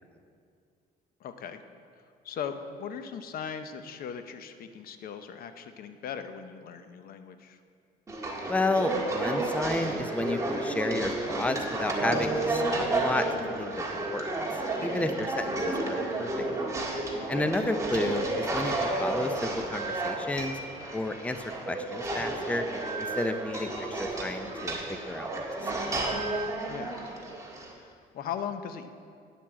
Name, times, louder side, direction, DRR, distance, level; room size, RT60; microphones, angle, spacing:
voice 1, 1.2-1.6 2.0-7.6 14.8-15.1 17.1-17.5 26.7-27.1 27.8-28.9, left 7 dB, 60° left, 9 dB, 0.8 m, -39 dB
sound 1, 8.1-27.7, right 2 dB, 20° right, 1.8 m, -31 dB
voice 2, 8.5-13.3 13.6-13.9 14.1-14.3 14.8-16.5 17.3-20.6 20.9-22.7 23.2-25.4 25.7-25.8, left 2 dB, 10° left, 7 dB, 0.6 m, -31 dB
10.0 x 7.0 x 7.5 m, 2.3 s
cardioid pair, 110°, 17 cm